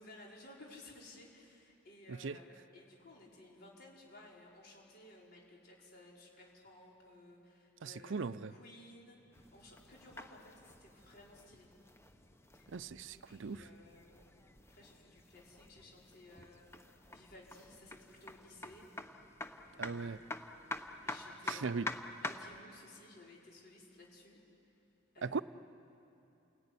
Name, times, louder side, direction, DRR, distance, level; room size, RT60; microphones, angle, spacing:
voice 1, 0.0-9.2 9.5-11.7 12.6-12.8 13.1-14.3 14.7-16.7 17.1-18.9 19.7-20.6 21.0-21.9 22.2-24.4 25.1-25.4, left 2 dB, 50° left, 5.2 m, -57 dB
voice 2, 7.8-8.5 12.7-13.6 19.8-20.2 21.5-21.9 25.2-25.4, right 4 dB, 65° right, 0.5 m, -39 dB
sound 1, 9.3-22.6, left 2 dB, 15° left, 1.0 m, -47 dB
29.5 x 18.5 x 9.7 m
head